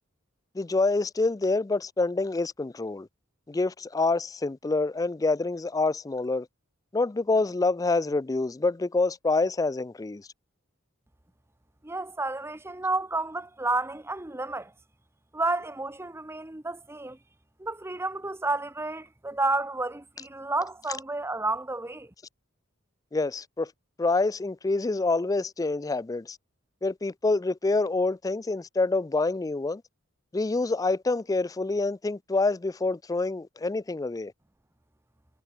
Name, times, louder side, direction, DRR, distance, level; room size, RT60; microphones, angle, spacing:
voice 1, 0.6-3.1 3.5-6.5 6.9-10.3 23.1-23.7 24.0-26.4 26.8-29.8 30.3-34.3, left 3 dB, 15° left, 0.3 m, -27 dB
voice 2, 11.8-14.7 15.3-17.2 17.6-22.1, right 2 dB, 10° right, 0.8 m, -31 dB
head